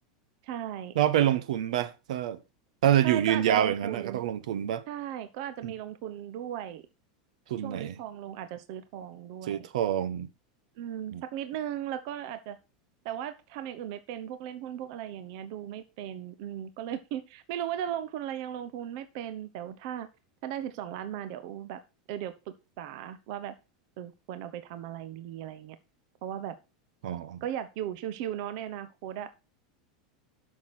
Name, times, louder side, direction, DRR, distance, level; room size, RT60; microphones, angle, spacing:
voice 1, 0.4-0.9 3.0-4.2 4.9-6.8 7.6-9.7 10.8-12.6 13.0-20.1 20.4-21.8 22.1-23.5 24.0-25.8 26.2-26.6 27.4-29.3, right 10 dB, 45° right, 0.9 m, -37 dB
voice 2, 0.9-2.4 2.8-4.8 5.6-5.7 7.5-7.9 9.5-10.3 11.1-11.2 27.0-27.4, right 11 dB, 80° right, 1.1 m, -26 dB
12.0 x 6.4 x 4.3 m
supercardioid pair, 175°, 4 cm